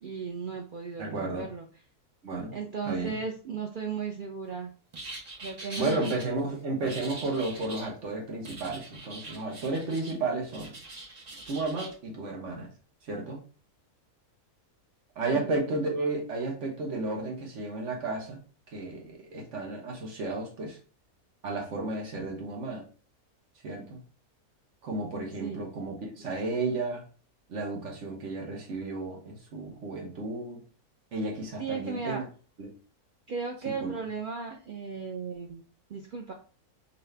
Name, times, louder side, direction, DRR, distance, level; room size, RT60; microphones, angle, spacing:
voice 1, 0.0-1.7 2.5-4.7 5.4-6.0 15.2-15.5 25.4-25.6 31.6-32.2 33.3-35.6 35.9-36.3, right 5 dB, 80° right, 1 dB, 0.4 m, -35 dB
voice 2, 1.0-1.5 2.2-2.6 2.8-3.2 5.8-10.7 11.5-12.7 13.0-13.4 15.1-18.4 18.7-20.8 21.4-22.8 23.6-24.0 24.8-27.0 27.5-30.6 31.1-32.2 32.6-32.7 33.6-34.0, right 3 dB, 55° right, 1 dB, 1.3 m, -33 dB
sound 1, 4.9-6.2 6.9-7.9 8.4-10.2 10.5-11.9, right 2 dB, 35° right, 0.8 m, -43 dB
4.0 x 2.7 x 3.2 m, 0.38 s
omnidirectional pair, 1.5 m